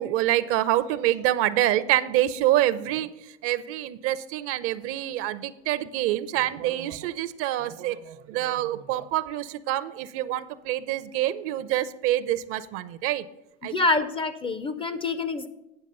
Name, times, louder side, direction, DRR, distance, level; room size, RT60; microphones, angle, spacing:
voice 1, 0.0-3.1 3.4-13.2 13.6-13.7, right 13 dB, 40° right, 14 dB, 0.5 m, -26 dB
voice 2, 13.6-15.5, left 3 dB, 15° left, 12 dB, 0.4 m, -26 dB
9.0 x 6.1 x 5.3 m, 0.92 s
hypercardioid pair, 95°, 35 cm